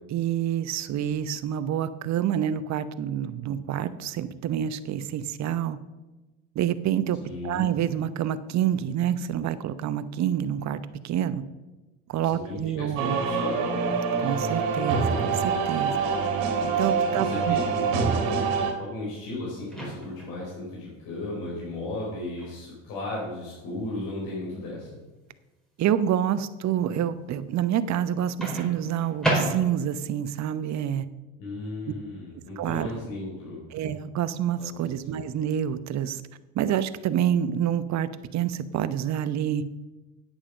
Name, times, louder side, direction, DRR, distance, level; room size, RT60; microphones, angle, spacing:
voice 1, 0.1-5.8 6.5-7.2 7.4-11.4 12.1-13.2 14.2-16.0 16.6-17.6 25.8-31.1 32.6-32.9 33.7-36.2 36.5-39.6, right 10 dB, 45° right, 14 dB, 0.9 m, -27 dB
voice 2, 7.2-7.7 12.2-13.8 17.1-18.1 18.8-24.9 31.4-33.6 34.6-34.9, left 2 dB, 60° left, -4 dB, 4.3 m, -35 dB
sound 1, 13.0-18.7, right 5 dB, 70° right, 2.2 m, -25 dB
Microwave oven, 19.7-20.4 22.4-22.6 28.4-30.0, right 1 dB, ahead, 4.6 m, -29 dB
9.1 x 8.7 x 6.5 m, 1.1 s
hypercardioid pair, 75°, 39 cm